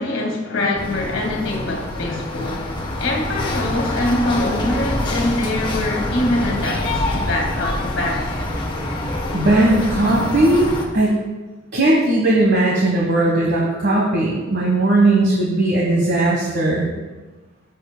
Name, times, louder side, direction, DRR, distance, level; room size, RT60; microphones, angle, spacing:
voice 1, 0.0-2.7 3.0-8.4, left 1 dB, 65° left, 0 dB, 1.7 m, -23 dB
sound 1, 0.8-10.9, left 1 dB, 25° left, 1.0 m, -25 dB
voice 2, 9.3-11.2 11.7-16.9, right 2 dB, 55° right, -3 dB, 1.3 m, -17 dB
13.5 x 7.0 x 2.2 m, 1.2 s
head